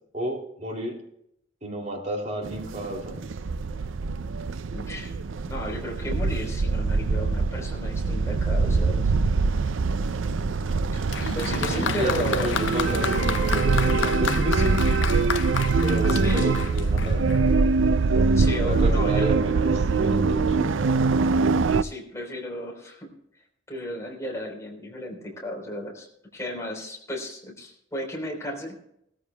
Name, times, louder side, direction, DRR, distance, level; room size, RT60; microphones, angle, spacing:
voice 1, 0.1-1.0 1.6-3.3 11.2-14.8 15.8-17.3 18.1-20.7, equal, 35° right, 0 dB, 3.0 m, -31 dB
sound 1, 2.4-21.8, right 4 dB, 75° right, 0.5 m, -23 dB
voice 2, 4.7-5.1 5.5-9.1 10.9-11.1 11.4-12.5 16.1-16.6 18.4-19.3 21.8-23.1 23.7-26.1 26.3-28.8, left 1 dB, 15° left, -1 dB, 4.0 m, -34 dB
Applause, 11.1-17.6 18.5-18.6, left 7 dB, 70° left, 0.6 m, -32 dB
20.5 x 14.0 x 2.3 m, 0.75 s
head